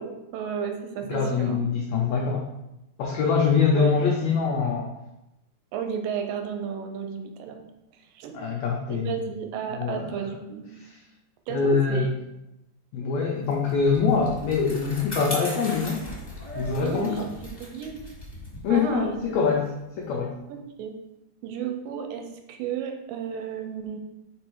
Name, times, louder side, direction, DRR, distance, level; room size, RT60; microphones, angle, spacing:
voice 1, 0.0-1.7 3.7-4.0 5.7-7.6 8.0-8.4 8.9-10.7 11.5-12.1 16.8-18.0 18.7-19.2 20.5-20.9 21.4-24.0, right 7 dB, 85° right, 5 dB, 2.3 m, -33 dB
voice 2, 1.0-2.5 3.0-4.9 8.3-9.2 9.8-10.0 11.5-12.1 12.9-16.0 16.5-17.3 18.6-19.7 20.0-20.3, left 5 dB, 85° left, 0 dB, 1.5 m, -24 dB
Bicycle, 13.5-20.2, left 1 dB, 15° left, 1.3 m, -39 dB
5.4 x 4.4 x 4.6 m, 0.89 s
omnidirectional pair, 4.0 m